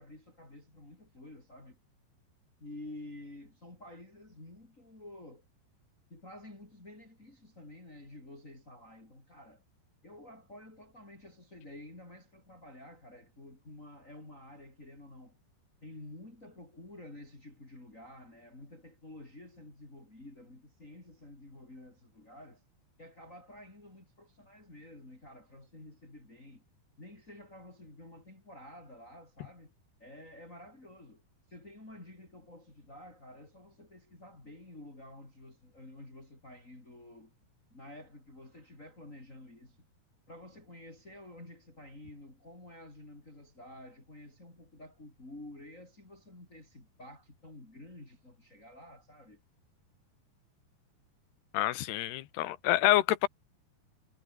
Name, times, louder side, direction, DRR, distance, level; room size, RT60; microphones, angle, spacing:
voice 1, 0.0-1.8 2.6-5.5 6.1-9.6 10.0-15.4 15.8-22.6 23.0-26.6 27.0-29.7 30.0-31.2 31.5-37.3 37.7-39.8 40.3-49.4, left 1 dB, 15° left, 5.7 m, -51 dB
voice 2, 51.5-53.3, left 15 dB, 75° left, 3.2 m, -27 dB
omnidirectional pair, 5.1 m